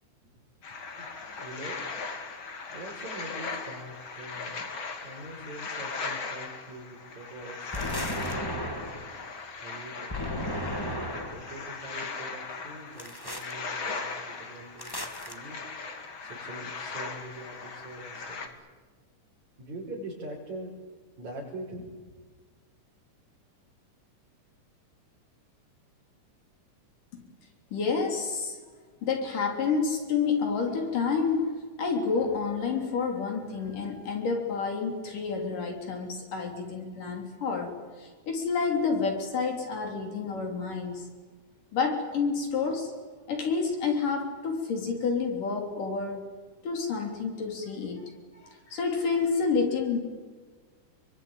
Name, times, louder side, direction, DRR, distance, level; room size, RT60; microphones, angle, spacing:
sound 1, 0.6-18.5, left 4 dB, 40° left, 2.8 m, -39 dB
voice 1, 1.0-1.8 2.7-4.6 5.0-8.8 9.6-10.1 10.8-15.0 15.3-15.6 15.9-18.6 19.6-20.8 21.2-22.1, right 1 dB, 60° right, -5 dB, 6.6 m, -43 dB
sound 2, 7.7-9.2 10.1-11.6 13.0-13.5 14.8-15.3, left 1 dB, 10° left, 1.5 m, -34 dB
voice 2, 27.7-28.6 29.0-41.1 41.7-42.9 43.3-46.2 46.6-48.0 48.3-50.0, left 5 dB, 85° left, 3 dB, 5.3 m, -29 dB
27.5 x 23.0 x 9.1 m, 1.4 s
omnidirectional pair, 3.7 m